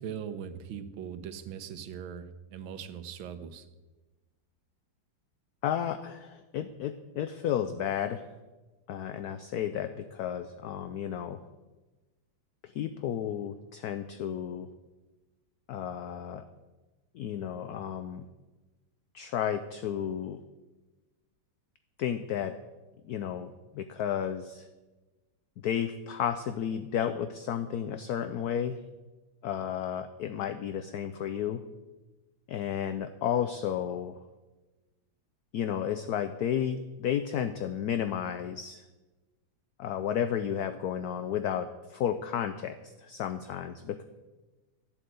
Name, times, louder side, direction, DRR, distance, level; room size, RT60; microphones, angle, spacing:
voice 1, 0.0-2.3 2.5-3.6, right 8 dB, 85° right, 11 dB, 1.7 m, -40 dB
voice 2, 5.6-8.2 8.9-11.4 12.6-14.7 15.7-16.4 17.1-18.3 19.1-20.4 22.0-22.6 23.1-24.7 25.6-28.8 29.4-31.6 32.5-34.2 35.5-38.8 39.8-44.0, left 9 dB, 70° left, 10 dB, 0.9 m, -32 dB
12.0 x 7.8 x 7.8 m, 1.2 s
omnidirectional pair, 2.2 m